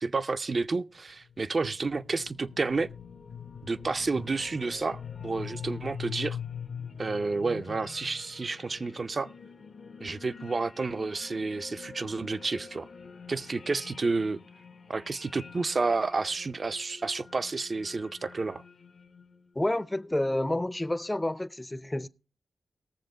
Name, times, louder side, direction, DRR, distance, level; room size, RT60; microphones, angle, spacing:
voice 1, 0.0-2.9 3.6-6.4 7.0-9.3 10.0-12.9 13.3-14.4 14.9-18.6, right 3 dB, 50° right, 0.5 m, -30 dB
sound 1, 1.1-19.5, left 7 dB, 65° left, 0.9 m, -44 dB
voice 2, 19.6-22.1, left 1 dB, 15° left, 0.5 m, -29 dB
19.0 x 7.1 x 3.9 m
cardioid pair, 65°, 0 cm